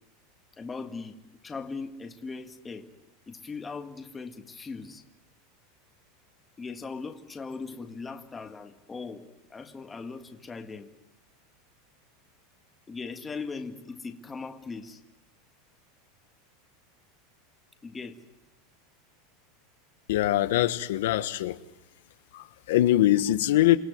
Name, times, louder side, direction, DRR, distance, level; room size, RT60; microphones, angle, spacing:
voice 1, 0.6-1.1 1.4-2.9 3.3-5.0 6.6-10.9 12.9-15.0 17.8-18.2, left 4 dB, 10° left, 1.7 m, -39 dB
voice 2, 20.1-21.6 22.3-23.8, left 14 dB, 80° left, 1.2 m, -23 dB
28.5 x 18.0 x 9.5 m
supercardioid pair, 165°, 0 cm